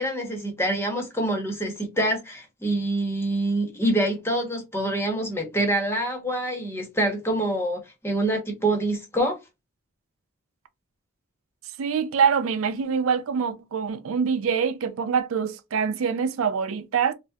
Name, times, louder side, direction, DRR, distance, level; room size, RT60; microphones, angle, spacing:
voice 1, 0.0-9.4, right 1 dB, 10° left, 0.8 m, -26 dB
voice 2, 11.8-17.1, right 6 dB, 85° right, 0.4 m, -25 dB
3.4 x 2.0 x 2.7 m
head